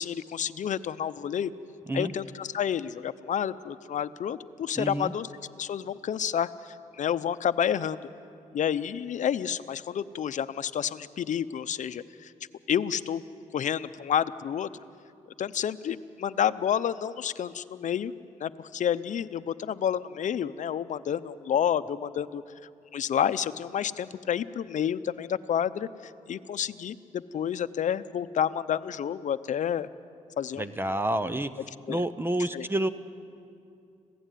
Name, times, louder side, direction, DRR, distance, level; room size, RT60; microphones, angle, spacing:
voice 1, 0.0-1.5 1.9-5.3 5.6-8.0 8.5-12.3 12.7-13.2 13.5-14.7 15.4-18.1 18.4-22.4 22.9-29.9 30.4-30.7 31.9-32.0 32.5-32.7, left 9 dB, 65° left, 12 dB, 0.7 m, -29 dB
voice 2, 4.8-5.1 30.6-31.5 31.9-32.9, right 1 dB, 15° right, 12 dB, 0.8 m, -28 dB
26.0 x 17.0 x 9.2 m, 2.5 s
cardioid pair, 95°, 14 cm